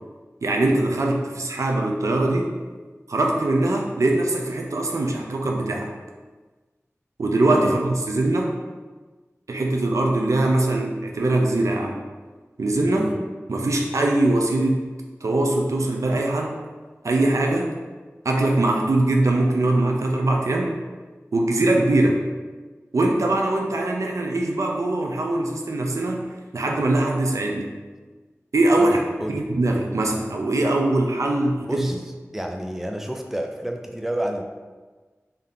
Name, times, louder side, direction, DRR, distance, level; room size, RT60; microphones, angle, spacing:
voice 1, 0.4-2.5 3.1-5.9 7.2-8.6 9.5-12.1 12.6-13.1 13.5-14.8 15.2-16.6 17.0-17.7 18.2-20.8 21.3-22.2 22.9-27.7 28.5-29.0 29.3-31.9, right 2 dB, 85° right, 1 dB, 0.5 m, -22 dB
voice 2, 28.8-29.3 31.7-32.0 32.3-34.4, right 1 dB, 5° right, 3 dB, 0.4 m, -29 dB
3.7 x 2.8 x 3.6 m, 1.3 s
wide cardioid pair, 60°, 5 cm